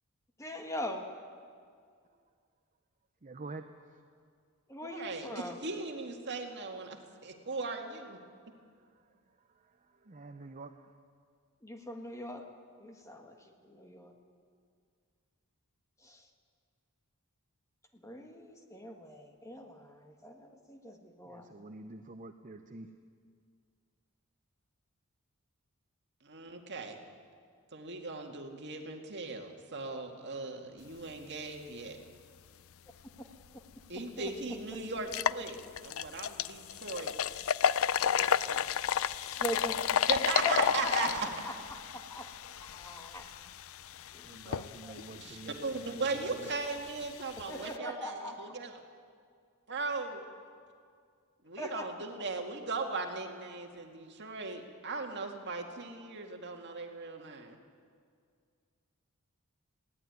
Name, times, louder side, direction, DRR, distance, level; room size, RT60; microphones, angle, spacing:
voice 1, 0.4-1.1 4.7-5.6 11.6-12.5 12.8-14.2 16.0-16.3 17.9-21.5 33.9-34.3 34.7-34.8 39.2-39.8 40.4-41.5 41.9-42.3 42.6-43.3 44.1-45.0 47.4-48.5 51.6-51.9, left 1 dB, 15° left, 4 dB, 1.6 m, -41 dB
voice 2, 3.2-4.0 8.2-10.9 21.2-22.9 44.1-46.5, right 3 dB, 35° right, 7 dB, 0.7 m, -49 dB
voice 3, 4.8-8.2 26.2-27.0 27.7-32.0 33.9-37.1 38.1-38.6 40.1-41.3 45.2-48.8 49.7-50.2 51.4-57.6, right 4 dB, 50° right, 3 dB, 2.1 m, -38 dB
sound 1, 33.7-33.8 34.3-34.4 35.0-47.8, left 8 dB, 65° left, 0.5 m, -33 dB
20.5 x 16.5 x 9.5 m, 2.2 s
head